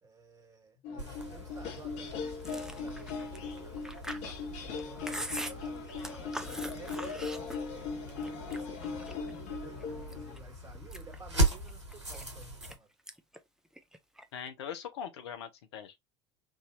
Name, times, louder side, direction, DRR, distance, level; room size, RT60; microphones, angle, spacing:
voice 1, 0.0-4.0 4.5-9.3 9.6-12.9, right 2 dB, 25° right, 1.9 m, -54 dB
sound 1, 0.8-10.4, left 5 dB, 50° left, 1.1 m, -39 dB
sound 2, 1.0-12.8, right 1 dB, 90° right, 1.5 m, -38 dB
Chewing mastication, 2.4-7.9 8.2-9.3 9.8-10.4 10.7-12.7 13.1-13.4 13.7-14.5, right 1 dB, 5° right, 0.7 m, -42 dB
voice 2, 14.3-16.0, left 8 dB, 70° left, 0.9 m, -41 dB
4.8 x 2.7 x 2.7 m
figure-of-eight pair, 70°, 15 cm